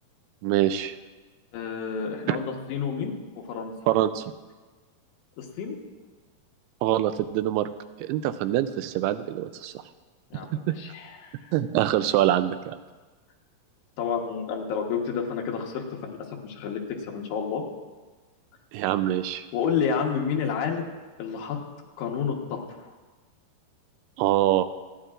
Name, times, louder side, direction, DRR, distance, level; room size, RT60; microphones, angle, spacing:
voice 1, 0.4-0.9 2.3-2.4 3.9-4.3 6.8-7.7 8.0-9.7 10.3-10.4 10.7-10.8 11.5-12.8 18.7-19.4 24.2-24.6, right 13 dB, 90° right, 12 dB, 2.6 m, -24 dB
voice 2, 1.5-3.1 3.5-3.7 5.4-5.8 10.3-11.4 14.0-16.2 16.4-16.8 17.1-17.6 19.5-20.9 21.2-21.6 22.0-22.9, left 6 dB, 85° left, 0 dB, 3.3 m, -30 dB
26.5 x 9.8 x 2.5 m, 1.3 s
omnidirectional pair, 4.6 m